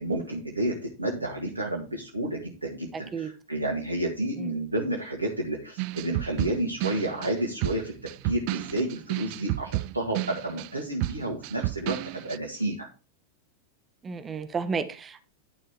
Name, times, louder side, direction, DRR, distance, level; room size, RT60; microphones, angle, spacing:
voice 1, 0.0-12.9, right 1 dB, 80° right, 2.1 m, -31 dB
sound 1, 5.8-12.4, right 20 dB, 45° right, 0.4 m, -31 dB
voice 2, 14.0-15.2, right 5 dB, 20° right, 1.1 m, -32 dB
11.0 x 6.2 x 4.6 m
figure-of-eight pair, 90°, 0 cm